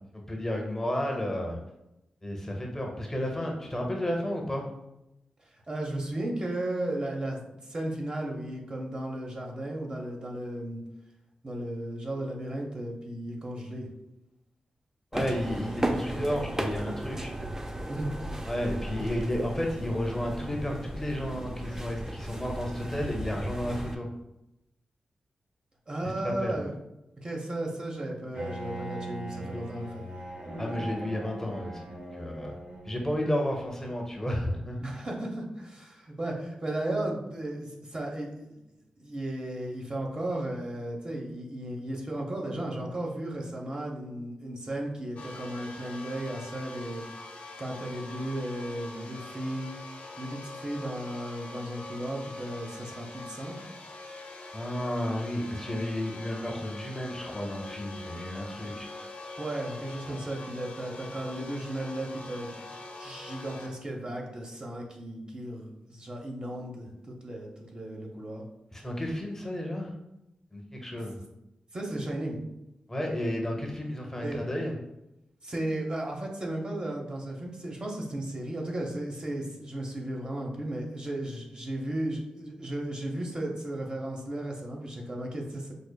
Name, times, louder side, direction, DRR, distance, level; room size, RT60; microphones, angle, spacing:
voice 1, 0.1-1.6 2.2-4.7 15.1-17.3 18.4-24.1 26.0-26.6 30.6-32.5 32.9-34.8 54.5-58.9 60.1-60.2 68.7-69.9 70.5-71.2 72.9-74.7, left 1 dB, 15° left, 1 dB, 0.6 m, -32 dB
voice 2, 5.7-10.8 11.4-13.9 17.9-18.1 25.9-26.7 27.2-30.0 34.8-38.6 39.0-47.0 47.6-49.8 50.2-53.6 59.4-68.4 71.7-72.4 74.2-74.4 75.4-85.7, right 1 dB, 35° right, 0 dB, 0.7 m, -35 dB
sound 1, 15.1-23.9, right 1 dB, 20° right, 0.3 m, -35 dB
Bowed string instrument, 28.3-33.1, right 1 dB, 85° right, 1.3 m, -40 dB
sound 2, 45.2-63.7, left 2 dB, 75° left, 0.6 m, -44 dB
4.8 x 2.3 x 2.2 m, 0.89 s
wide cardioid pair, 85°, 3 cm